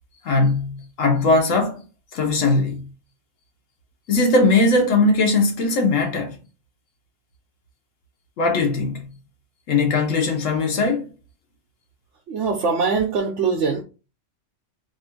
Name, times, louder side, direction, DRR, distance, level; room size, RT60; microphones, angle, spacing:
voice 1, 0.2-1.8 2.1-2.9 4.1-6.4 8.4-9.1 9.7-11.1, left 3 dB, 90° left, 1.3 m, -19 dB
voice 2, 12.3-13.8, right 5 dB, 70° right, 1.0 m, -22 dB
3.0 x 2.5 x 4.3 m
omnidirectional pair, 1.3 m